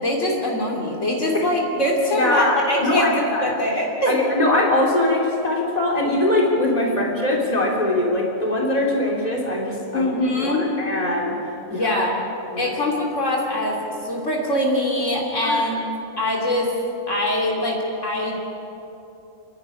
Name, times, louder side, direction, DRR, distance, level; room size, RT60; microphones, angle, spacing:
voice 1, 0.0-3.1 3.4-4.2 6.8-6.9 9.9-10.7 11.7-12.2 12.6-15.8 16.2-16.7 17.1-18.3, left 1 dB, 60° left, -1 dB, 3.1 m, -23 dB
voice 2, 2.1-3.5 4.1-10.1 10.4-11.3 11.7-12.0 12.5-12.6 15.4-15.6, left 1 dB, 30° left, -2 dB, 3.4 m, -22 dB
29.5 x 11.0 x 9.8 m, 2.9 s
omnidirectional pair, 1.4 m